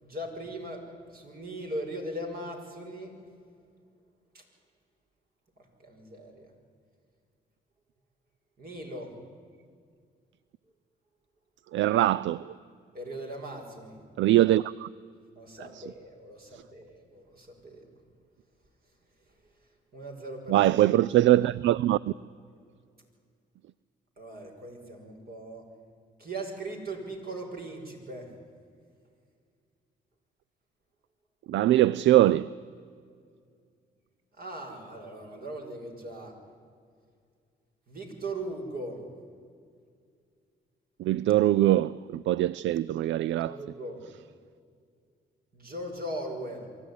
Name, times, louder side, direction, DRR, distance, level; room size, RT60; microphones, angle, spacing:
voice 1, 0.0-0.8 1.1-3.1 4.3-4.4 5.8-6.5 8.6-9.1 12.9-14.0 15.4-17.9 19.9-20.7 24.2-25.7 26.2-28.3 34.4-36.3 37.9-39.0 43.4-44.0 45.5-46.7, right 1 dB, 50° right, 5.7 m, -39 dB
voice 2, 11.7-12.4 14.2-14.9 15.7-15.8 20.5-22.0 31.5-32.5 41.0-43.6, right 14 dB, 70° right, 0.4 m, -22 dB
24.0 x 13.5 x 9.8 m
supercardioid pair, 65°, 20 cm